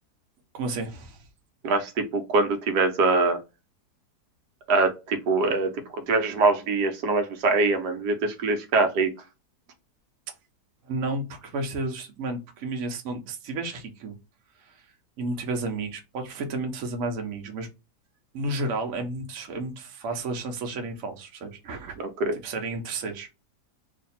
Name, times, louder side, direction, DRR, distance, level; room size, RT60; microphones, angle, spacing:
voice 1, 0.5-1.3 10.8-14.1 14.6-14.9 15.2-17.7 18.3-22.0 22.3-23.3, right 2 dB, 60° right, 3 dB, 1.1 m, -32 dB
voice 2, 1.6-3.4 4.7-5.7 6.1-9.1 22.2-22.3, right 3 dB, 80° right, 6 dB, 1.3 m, -23 dB
2.8 x 2.6 x 4.1 m, 0.27 s
omnidirectional pair, 1.8 m